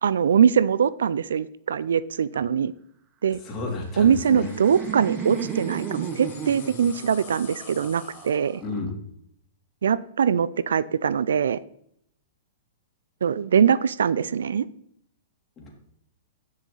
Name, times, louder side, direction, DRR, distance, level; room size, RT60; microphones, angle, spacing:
voice 1, 0.0-2.7 3.2-3.4 4.0-8.6 9.8-11.6 13.2-14.7, right 7 dB, 80° right, 19 dB, 0.4 m, -22 dB
voice 2, 3.4-4.5 8.6-8.9 15.6-15.7, left 3 dB, 25° left, -1 dB, 3.1 m, -32 dB
sound 1, 3.8-8.6, left 9 dB, 60° left, 1.4 m, -47 dB
Laughter, 3.9-8.9, right 8 dB, 30° right, 0.9 m, -35 dB
10.0 x 6.4 x 4.0 m, 0.70 s
hypercardioid pair, 120°, 0 cm